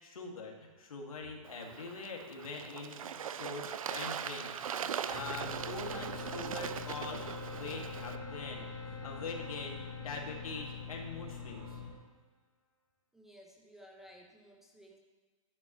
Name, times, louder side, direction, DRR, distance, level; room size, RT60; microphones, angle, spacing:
voice 1, 0.0-4.5 4.7-11.7, left 3 dB, 80° left, 0 dB, 2.2 m, -43 dB
Bird / Water, 1.4-8.2, right 8 dB, 75° right, 0.6 m, -40 dB
sound 1, 5.1-11.9, left 6 dB, 20° right, 3.7 m, -45 dB
sound 2, 5.4-11.8, right 1 dB, 20° left, 1.8 m, -48 dB
voice 2, 13.1-15.0, equal, ahead, 0 dB, 0.3 m, -56 dB
11.5 x 10.5 x 3.1 m, 1.3 s
hypercardioid pair, 155°, 18 cm